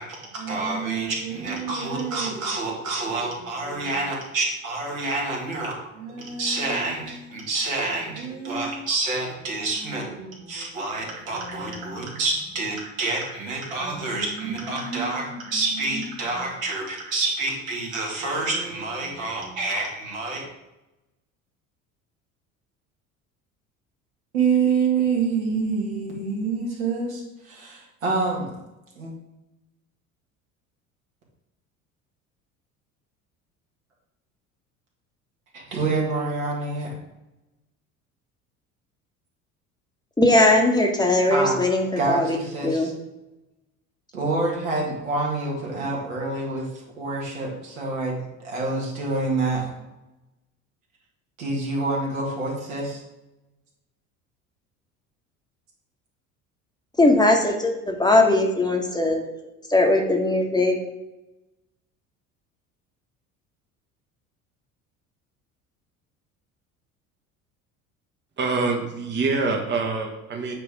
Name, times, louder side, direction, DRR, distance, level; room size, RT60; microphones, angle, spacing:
voice 1, 0.0-20.4 24.3-28.5 29.0-29.1 35.5-36.9 41.3-41.6 42.0-42.9 44.1-49.6 51.4-53.0, right 3 dB, 75° right, -3 dB, 2.1 m, -27 dB
voice 2, 40.2-42.4 42.6-42.9 57.0-59.2 59.7-60.7, left 2 dB, 10° left, 1 dB, 1.1 m, -19 dB
voice 3, 68.4-70.5, right 3 dB, 25° right, 2 dB, 1.0 m, -25 dB
8.9 x 3.3 x 5.0 m, 0.99 s
figure-of-eight pair, 65°, 42 cm